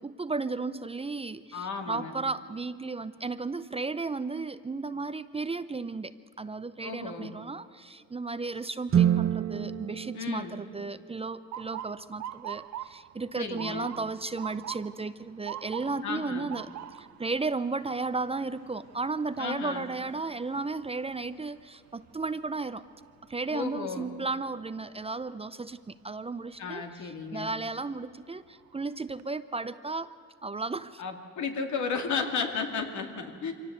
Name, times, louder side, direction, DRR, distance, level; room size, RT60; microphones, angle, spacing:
voice 1, 0.0-22.8 23.3-30.1 30.4-31.0, right 3 dB, 20° right, 13 dB, 0.6 m, -34 dB
voice 2, 1.5-2.1 6.8-7.3 10.1-10.6 13.4-13.9 16.0-16.5 19.4-19.9 23.5-24.1 26.6-27.5 31.0-33.5, left 5 dB, 70° left, 4 dB, 2.6 m, -34 dB
sound 1, 8.9-11.3, right 9 dB, 45° right, 1.1 m, -28 dB
Motor vehicle (road) / Siren, 11.5-23.4 23.9-24.3 25.1-25.4 27.3-27.5 28.0-28.1 28.5-29.2, right 12 dB, 65° right, 0.8 m, -44 dB
24.5 x 17.5 x 8.1 m, 2.3 s
cardioid pair, 90°, 30 cm